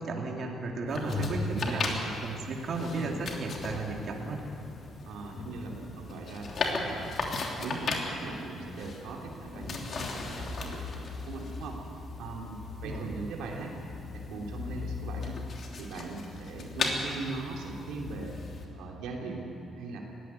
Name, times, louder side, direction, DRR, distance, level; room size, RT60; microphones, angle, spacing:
voice 1, 0.0-1.8 2.2-4.4 12.8-13.1, right 3 dB, 60° right, 0 dB, 2.9 m, -34 dB
sound 1, 0.9-18.7, left 3 dB, 50° left, 3.3 m, -37 dB
voice 2, 1.0-2.1 2.8-3.1 5.0-7.1 7.5-11.8 12.2-12.6 12.8-13.7 14.1-15.4 15.8-18.3 18.7-20.0, right 3 dB, 90° right, -1 dB, 3.0 m, -40 dB
20.0 x 16.5 x 9.7 m, 2.8 s
cardioid pair, 90°, 0 cm